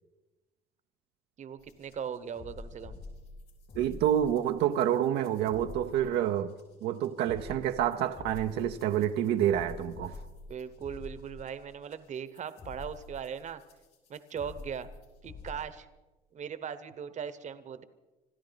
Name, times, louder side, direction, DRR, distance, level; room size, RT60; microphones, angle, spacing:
voice 1, 1.4-3.0 10.5-13.6 14.1-14.9 15.2-15.9 16.3-17.8, right 7 dB, 45° right, 1.0 m, -39 dB
sound 1, 1.6-15.7, left 3 dB, 70° left, 4.0 m, -48 dB
voice 2, 3.8-6.5 6.8-10.2, right 10 dB, 85° right, 0.7 m, -28 dB
26.0 x 13.0 x 4.0 m
cardioid pair, 110°, 17 cm